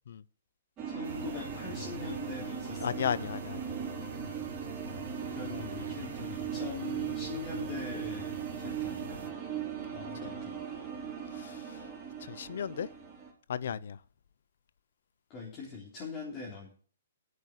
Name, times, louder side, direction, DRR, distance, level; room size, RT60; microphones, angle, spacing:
sound 1, 0.8-13.3, right 8 dB, 20° right, 4.1 m, -39 dB
voice 1, 0.9-3.1 5.3-9.2 9.9-10.8 15.3-16.7, left 4 dB, 30° left, 3.3 m, -42 dB
sound 2, 1.0-9.3, right 2 dB, 65° right, 1.9 m, -46 dB
voice 2, 2.8-3.7 11.4-11.6 12.3-12.9 13.5-14.0, left 8 dB, 70° left, 0.6 m, -34 dB
9.5 x 6.4 x 8.3 m
hypercardioid pair, 150°, 0 cm